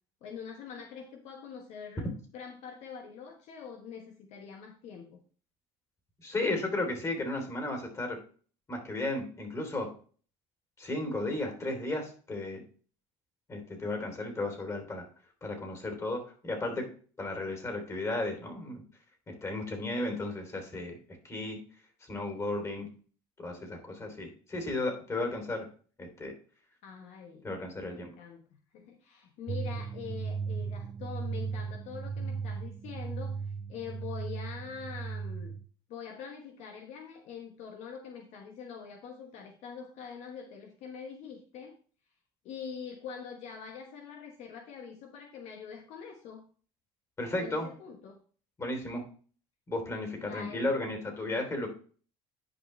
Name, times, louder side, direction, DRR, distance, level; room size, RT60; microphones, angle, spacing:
voice 1, 0.2-5.2 26.8-27.5 27.8-28.4 28.7-33.4 33.7-35.5 35.9-41.8 42.4-46.4 47.4-48.2 50.1-50.7, left 6 dB, 65° left, 3 dB, 1.3 m, -44 dB
voice 2, 6.2-8.2 8.7-9.9 10.8-12.6 13.5-15.1 15.4-16.9 17.2-18.8 19.3-21.0 21.2-21.6 22.0-22.9 23.4-25.7 26.0-26.3 27.4-28.1 47.2-47.7 48.6-49.0 49.7-51.7, left 2 dB, 25° left, 3 dB, 3.4 m, -34 dB
sound 1, 29.5-35.6, right 5 dB, 30° right, 0.6 m, -36 dB
10.5 x 5.3 x 3.3 m, 0.42 s
supercardioid pair, 110°, 12 cm